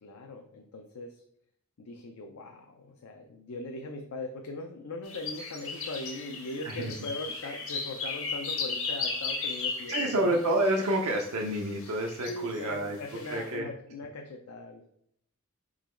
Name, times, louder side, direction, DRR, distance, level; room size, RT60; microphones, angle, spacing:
voice 1, 0.0-1.2 1.8-10.3 11.9-14.9, left 2 dB, 85° left, 2 dB, 0.5 m, -40 dB
sound 1, 5.0-11.0 11.8-12.6 13.1-13.4, left 4 dB, 65° left, 1.1 m, -35 dB
voice 2, 9.9-13.0 13.3-13.7, right 1 dB, 85° right, 0 dB, 0.6 m, -28 dB
3.9 x 3.0 x 4.3 m, 0.71 s
head